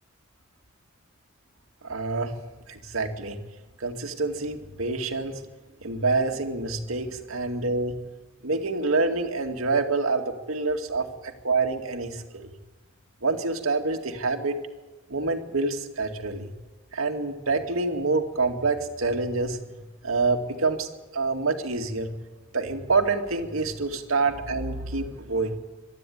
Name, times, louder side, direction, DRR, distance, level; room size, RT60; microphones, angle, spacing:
voice 1, 1.8-2.3 2.7-3.4 3.8-5.4 5.8-7.9 8.4-12.5 13.2-14.6 15.1-16.5 16.9-19.6 20.0-22.1 22.5-25.6, right 3 dB, 90° right, 5 dB, 2.2 m, -27 dB
24.0 x 12.5 x 9.4 m, 1.3 s
head